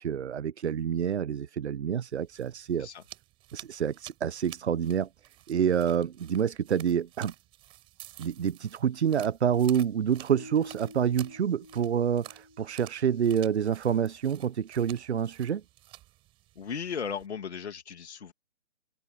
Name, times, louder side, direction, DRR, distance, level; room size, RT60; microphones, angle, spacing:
voice 1, 0.0-2.9 3.5-7.3 8.2-15.6, right 8 dB, 65° right, 0.9 m, -28 dB
sound 1, 2.1-17.3, right 17 dB, 15° right, 4.4 m, -52 dB
sound 2, 10.3-13.5, left 1 dB, 20° left, 0.4 m, -50 dB
voice 2, 16.6-18.3, left 7 dB, 65° left, 2.4 m, -36 dB
hypercardioid pair, 160°, 36 cm